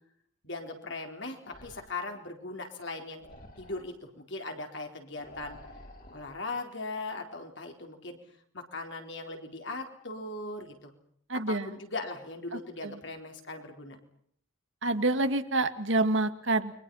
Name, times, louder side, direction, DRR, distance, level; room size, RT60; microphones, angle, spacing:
voice 1, 0.4-3.2 3.6-5.6 6.1-8.2 8.5-10.9 11.5-14.0, left 2 dB, 60° left, 4 dB, 4.3 m, -39 dB
sound 1, 1.4-2.1 3.2-4.0 5.1-6.4, left 1 dB, 45° left, 4.1 m, -50 dB
voice 2, 11.3-11.7 12.5-13.0 14.8-16.7, right 2 dB, 65° right, 9 dB, 2.1 m, -28 dB
30.0 x 23.5 x 5.7 m, 0.65 s
head